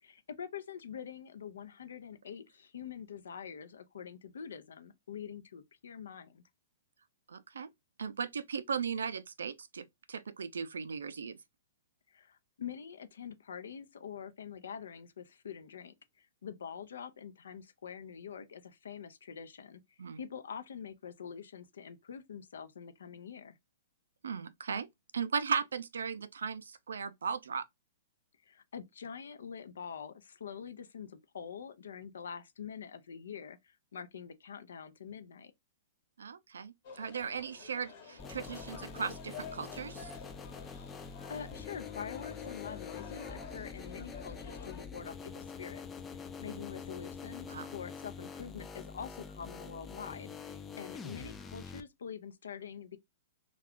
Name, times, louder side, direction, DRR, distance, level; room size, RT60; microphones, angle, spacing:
voice 1, 0.0-6.4 12.1-19.8 20.2-23.6 28.5-35.5 41.3-45.9 46.4-53.0, left 7 dB, 80° left, 0.6 m, -45 dB
voice 2, 7.3-7.7 8.0-11.4 20.0-20.2 24.2-24.9 25.1-27.6 36.2-40.1 46.4-46.6 47.5-47.7, right 6 dB, 85° right, 0.4 m, -37 dB
sound 1, 36.8-44.8, left 6 dB, 50° left, 1.1 m, -49 dB
sound 2, 38.2-51.8, left 5 dB, 15° left, 0.4 m, -45 dB
2.3 x 2.3 x 3.5 m
hypercardioid pair, 135°, 0 cm